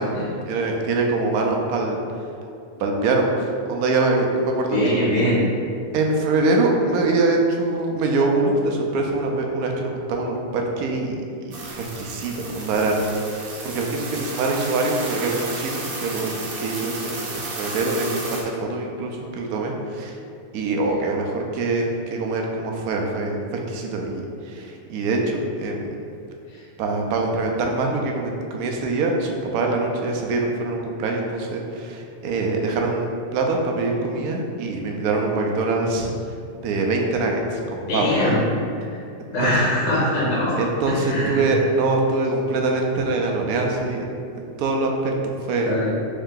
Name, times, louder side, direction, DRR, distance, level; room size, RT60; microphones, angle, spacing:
voice 1, 0.0-2.3 2.8-5.0 5.9-20.2 20.5-25.9 26.8-36.3 36.6-38.2 39.4-39.5 40.6-44.1 44.4-45.1 45.4-45.7, right 3 dB, 75° right, 1 dB, 1.0 m, -24 dB
voice 2, 4.7-5.5 26.5-26.6 37.9-38.4 38.7-39.0 39.3-41.5 45.6-45.9, left 1 dB, 70° left, -7 dB, 1.5 m, -22 dB
sound 1, 11.5-18.4, right 3 dB, 55° right, 0.6 m, -33 dB
3.5 x 3.2 x 3.7 m, 2.5 s
omnidirectional pair, 1.7 m